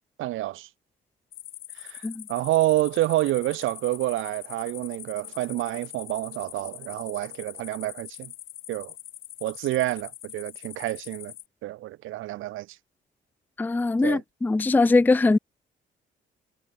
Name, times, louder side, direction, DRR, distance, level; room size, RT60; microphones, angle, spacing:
voice 1, 0.2-0.7 1.8-8.3 8.7-8.9 9.4-11.3 11.6-12.7 14.0-14.2, right 16 dB, 85° right, 1.1 m, -28 dB
sound 1, 1.3-11.5, left 13 dB, 75° left, 2.0 m, -43 dB
voice 2, 13.6-15.4, left 3 dB, 10° left, 0.4 m, -21 dB
cardioid pair, 90°, 20 cm